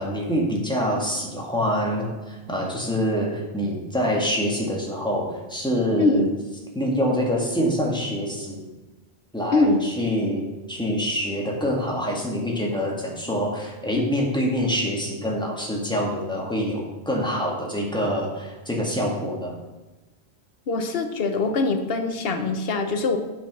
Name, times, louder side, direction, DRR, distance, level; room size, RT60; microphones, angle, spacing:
voice 1, 0.0-6.2 6.7-8.7 9.3-19.5, equal, 5° left, -2 dB, 1.9 m, -26 dB
voice 2, 6.0-6.3 9.5-9.8 20.7-23.2, left 3 dB, 65° left, 6 dB, 1.1 m, -22 dB
8.3 x 6.3 x 5.9 m, 1.1 s
omnidirectional pair, 1.1 m